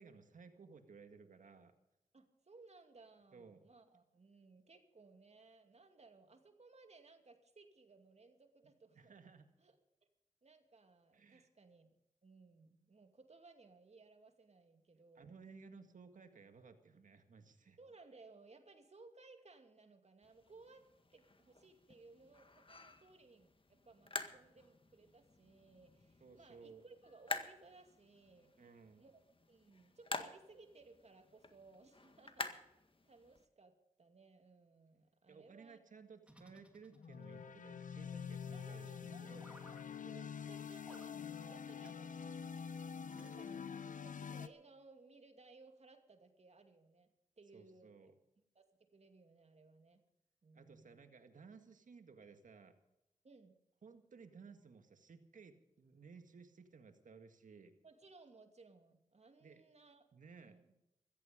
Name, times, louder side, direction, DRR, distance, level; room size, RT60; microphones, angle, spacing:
voice 1, 0.0-1.7 3.3-3.6 9.0-9.5 11.1-11.5 15.2-17.8 26.2-26.8 28.6-29.0 35.3-39.5 47.5-48.1 50.5-52.7 53.8-57.7 59.4-59.6 60.1-60.6, right 5 dB, 75° right, 7 dB, 1.9 m, -58 dB
voice 2, 2.1-9.2 9.6-9.8 10.4-15.3 17.8-28.5 29.0-29.2 29.5-32.8 33.1-35.8 38.5-39.4 40.0-42.6 43.2-43.7 44.0-47.1 47.4-47.9 48.5-50.0 50.4-51.1 53.2-53.6 57.8-60.1 60.4-60.7, right 3 dB, 55° right, 6 dB, 2.5 m, -62 dB
sound 1, 20.2-33.4, left 3 dB, 40° left, 1.8 m, -49 dB
sound 2, 36.2-37.4 39.4-39.8 40.8-41.1 41.8-42.0 43.1-44.0, right 1 dB, 10° right, 2.8 m, -61 dB
sound 3, 36.9-44.5, left 7 dB, 75° left, 0.9 m, -46 dB
15.5 x 14.5 x 5.2 m, 0.87 s
cardioid pair, 45°, 14 cm